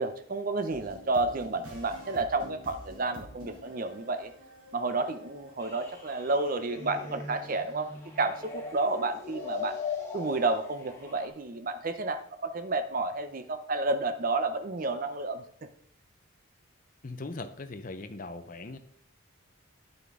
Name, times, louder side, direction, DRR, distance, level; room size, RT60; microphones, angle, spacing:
voice 1, 0.0-4.3 4.7-7.9 8.2-9.8 10.1-15.4, right 3 dB, 40° right, 9 dB, 0.5 m, -31 dB
sound 1, 0.7-6.6, equal, 90° right, 2.6 m, -49 dB
sound 2, 5.6-11.3, left 5 dB, 10° left, 1.5 m, -40 dB
voice 2, 17.0-18.8, left 2 dB, 40° left, 8 dB, 0.6 m, -39 dB
9.8 x 5.9 x 3.6 m, 0.64 s
head